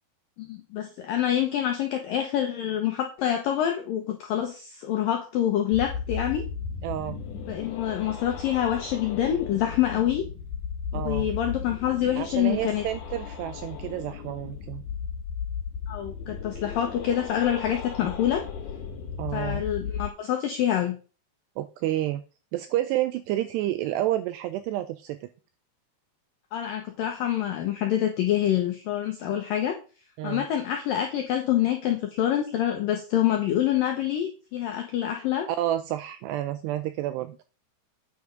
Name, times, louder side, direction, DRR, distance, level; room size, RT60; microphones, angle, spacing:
voice 1, 0.4-6.5 7.5-10.3 10.9-12.8 15.9-18.4 19.3-21.0 26.5-29.8 30.2-35.5, left 11 dB, 85° left, 3 dB, 2.0 m, -26 dB
sound 1, 5.7-20.1, left 6 dB, 65° left, 3.7 m, -35 dB
voice 2, 6.8-7.2 10.9-11.3 12.2-14.8 19.2-19.6 21.6-22.2 22.5-25.3 30.2-30.5 35.5-37.4, right 13 dB, 90° right, 11 dB, 2.4 m, -29 dB
9.4 x 5.8 x 5.1 m, 0.35 s
omnidirectional pair, 5.4 m